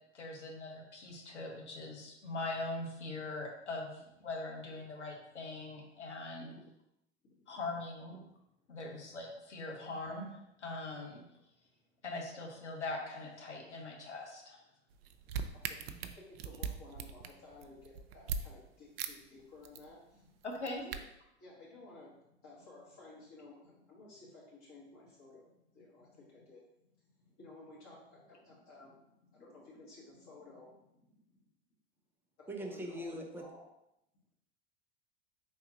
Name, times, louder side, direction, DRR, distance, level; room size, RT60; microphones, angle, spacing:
voice 1, 0.1-6.5 7.5-8.2 8.7-11.2 12.0-14.6 20.4-20.8, left 2 dB, 80° left, -1 dB, 1.1 m, -42 dB
voice 2, 7.2-7.6 8.7-9.0 15.3-20.4 20.8-21.0 21.4-26.6 27.0-31.1 32.4-33.6, left 2 dB, 40° left, -6 dB, 1.6 m, -56 dB
sound 1, 14.9-18.4 19.0-19.1 19.4-19.9 20.4-21.0, right 6 dB, 60° right, 0.5 m, -39 dB
voice 3, 32.5-33.4, right 1 dB, 5° right, 2 dB, 0.5 m, -42 dB
4.5 x 3.5 x 2.9 m, 0.83 s
figure-of-eight pair, 85°, 34 cm